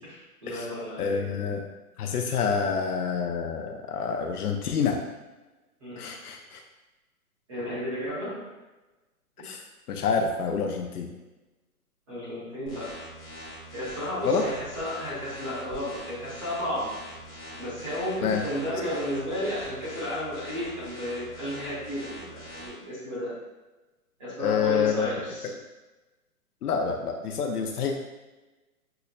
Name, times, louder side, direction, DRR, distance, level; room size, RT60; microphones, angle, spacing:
voice 1, 0.0-1.2 5.8-6.1 7.5-8.4 12.1-12.9 13.7-16.9 17.6-23.3 24.2-25.5, equal, 20° right, -10 dB, 0.9 m, -33 dB
voice 2, 1.0-1.6 2.0-5.0 6.0-6.6 9.4-9.6 9.9-11.1 14.2-14.5 18.2-18.4 24.4-25.1 25.4-25.5 26.6-27.9, left 6 dB, 85° left, 3 dB, 0.6 m, -27 dB
sound 1, 12.7-22.7, equal, 25° left, 0.7 m, -43 dB
5.6 x 2.1 x 2.3 m, 1.1 s
hypercardioid pair, 170°, 45 cm